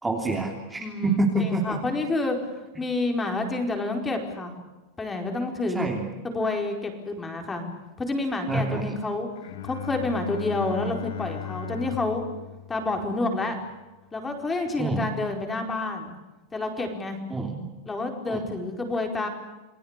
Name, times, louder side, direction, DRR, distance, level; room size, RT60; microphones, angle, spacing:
voice 1, 0.0-1.6 5.7-6.1 8.5-8.9 14.8-15.1 17.3-17.7 18.3-18.4, right 2 dB, 10° right, 0 dB, 3.2 m, -27 dB
voice 2, 0.8-2.4 2.8-4.5 5.0-5.9 6.2-7.6 8.0-9.3 9.6-12.2 12.7-13.6 14.1-16.1 16.5-17.2 17.9-19.3, left 2 dB, 10° left, 4 dB, 4.7 m, -29 dB
Bowed string instrument, 9.4-13.9, left 10 dB, 80° left, 2.3 m, -38 dB
29.0 x 19.5 x 8.3 m, 1.1 s
supercardioid pair, 155°, 0 cm